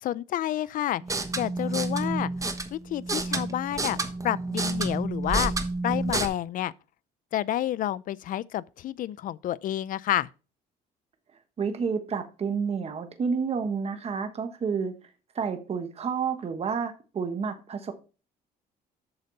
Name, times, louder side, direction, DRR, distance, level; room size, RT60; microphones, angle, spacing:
voice 1, 0.0-1.0 1.4-2.3 2.7-5.5 5.8-6.7 7.3-10.3, left 12 dB, 55° left, 0.5 m, -29 dB
sound 1, 1.0-6.3, right 2 dB, 20° right, 1.2 m, -29 dB
voice 2, 11.6-14.9 15.3-17.9, right 6 dB, 35° right, 1.3 m, -30 dB
8.0 x 6.6 x 4.0 m
cardioid pair, 110°, 17 cm